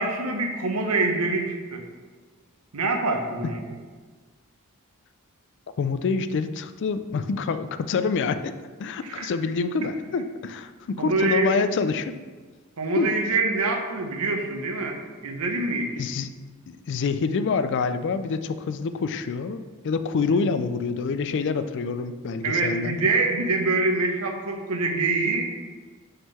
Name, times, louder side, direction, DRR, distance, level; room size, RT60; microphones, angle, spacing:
voice 1, 0.0-1.8 2.7-3.6 9.0-9.3 11.0-11.5 12.8-16.0 22.4-25.5, right 3 dB, 85° right, 4 dB, 0.9 m, -25 dB
voice 2, 5.8-8.5 8.8-12.2 13.0-13.1 16.0-16.3 16.7-22.9, left 5 dB, 55° left, 11 dB, 0.3 m, -26 dB
5.6 x 3.7 x 5.5 m, 1.4 s
head